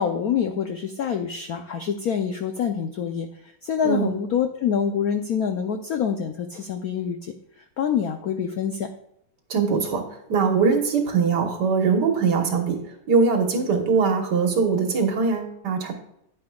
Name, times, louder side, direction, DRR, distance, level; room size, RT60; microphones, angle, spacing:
voice 1, 0.0-3.3 3.6-7.3 7.8-8.9, left 7 dB, 75° left, 6 dB, 0.8 m, -26 dB
voice 2, 3.8-4.2 9.5-10.0 10.3-12.8 13.1-15.9, right 5 dB, 55° right, 4 dB, 1.8 m, -21 dB
9.7 x 9.6 x 2.4 m, 0.76 s
omnidirectional pair, 2.4 m